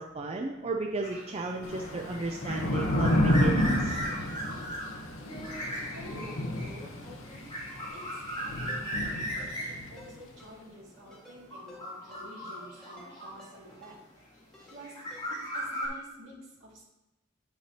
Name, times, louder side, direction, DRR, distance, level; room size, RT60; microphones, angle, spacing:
voice 1, 0.0-4.0, right 3 dB, 30° right, 2 dB, 0.5 m, -34 dB
sound 1, 1.0-13.9 14.6-15.9, equal, 25° left, 2.6 m, -38 dB
Thunder / Rain, 1.6-10.0, left 1 dB, 75° left, 0.9 m, -30 dB
voice 2, 5.3-7.5 7.9-14.0 14.7-15.0 15.5-16.8, right 1 dB, 70° right, -4 dB, 2.4 m, -49 dB
Ringtone, 8.7-8.8 9.4-9.7 10.0-10.1 10.4-10.5 11.1-11.4 11.7-11.8 12.1-12.2 12.8-13.1 13.4-13.5 13.8-13.9 14.5-14.8 15.1-15.2, left 2 dB, 5° left, 1.9 m, -52 dB
9.6 x 5.7 x 2.9 m, 1.0 s
head